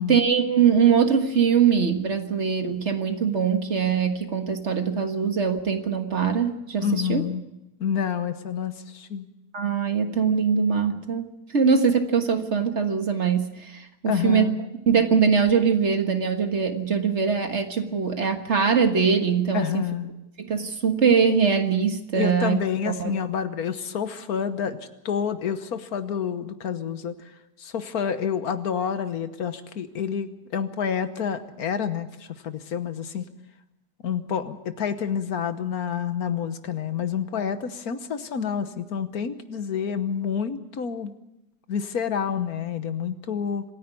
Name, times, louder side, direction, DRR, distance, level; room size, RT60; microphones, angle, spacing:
voice 1, 0.1-7.2 9.5-14.5 14.9-19.8 20.4-22.6 22.8-23.1, right 6 dB, 45° right, 6 dB, 1.8 m, -22 dB
voice 2, 6.8-7.4 7.8-9.3 14.1-14.6 19.5-20.1 22.1-24.8 25.0-27.2 27.6-33.3 34.0-41.1 41.7-43.6, left 7 dB, 70° left, 11 dB, 1.6 m, -28 dB
26.0 x 10.5 x 9.7 m, 0.91 s
omnidirectional pair, 1.7 m